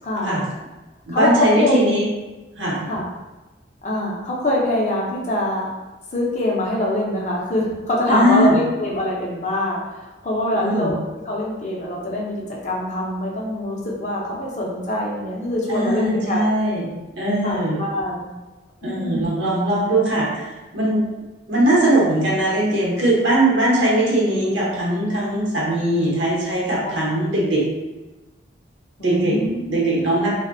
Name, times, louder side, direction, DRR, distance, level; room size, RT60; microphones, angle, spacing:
voice 1, 0.0-0.4 1.1-1.8 2.8-3.0 3.8-5.7 6.1-11.0 11.3-16.5 17.4-18.3 18.8-19.3 26.8-27.0 29.0-29.8, left 1 dB, 40° left, -3 dB, 0.4 m, -24 dB
voice 2, 1.1-2.0 2.6-2.9 8.1-8.6 10.5-11.0 15.7-17.8 18.8-21.0 21.5-27.7 29.0-30.3, right 1 dB, 75° right, -5 dB, 0.8 m, -20 dB
2.5 x 2.1 x 2.5 m, 1.1 s
head